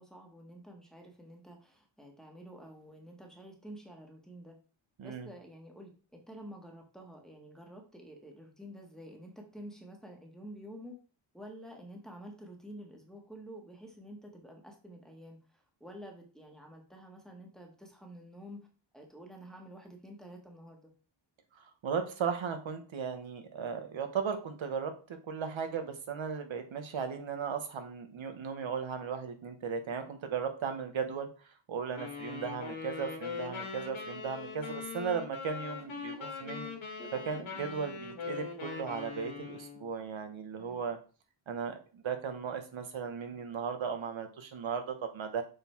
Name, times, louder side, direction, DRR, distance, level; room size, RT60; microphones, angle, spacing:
voice 1, 0.0-4.5 5.0-11.0 11.3-18.7 18.9-20.9 37.0-37.1 40.6-40.8, equal, ahead, 1 dB, 1.4 m, -49 dB
voice 2, 5.0-5.3 21.6-24.9 25.3-36.7 37.3-41.0 41.5-45.4, right 6 dB, 85° right, 6 dB, 1.2 m, -36 dB
sound 1, 31.9-39.9, left 5 dB, 90° left, 1.8 m, -41 dB
6.7 x 4.0 x 4.4 m, 0.36 s
wide cardioid pair, 165°, 46 cm